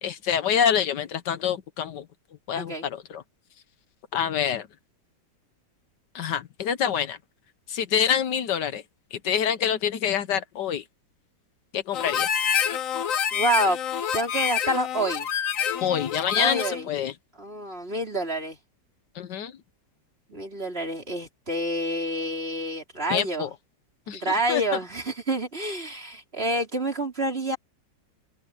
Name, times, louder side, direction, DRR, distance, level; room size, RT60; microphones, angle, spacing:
voice 1, 0.0-2.0 2.5-3.2 4.1-4.7 6.1-7.2 7.7-8.8 9.1-10.8 11.7-12.3 15.8-17.1 19.1-19.5 23.1-23.5 24.1-24.2 24.5-24.6, left 8 dB, 75° left, 1.5 m, -26 dB
Harmonica, 11.9-16.8, left 8 dB, 55° left, 1.1 m, -27 dB
voice 2, 13.3-13.8 14.1-15.3 16.4-16.9 17.4-18.6 20.3-23.5 24.1-27.6, right 1 dB, 30° right, 4.6 m, -28 dB
omnidirectional pair, 2.0 m